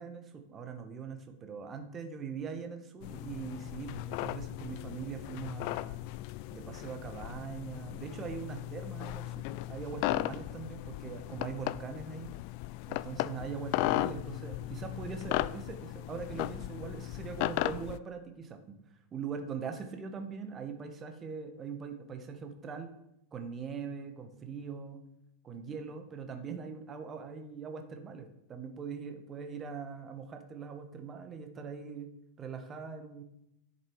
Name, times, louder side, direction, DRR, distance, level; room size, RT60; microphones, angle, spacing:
voice 1, 0.0-6.1 6.5-12.3 12.9-18.8 19.1-22.9 23.3-25.0 25.4-32.1 32.4-33.2, right 6 dB, 25° right, 6 dB, 1.7 m, -42 dB
sound 1, 3.0-18.0, left 17 dB, 45° left, 0.4 m, -36 dB
10.5 x 7.7 x 4.9 m, 0.82 s
figure-of-eight pair, 90°, 0 cm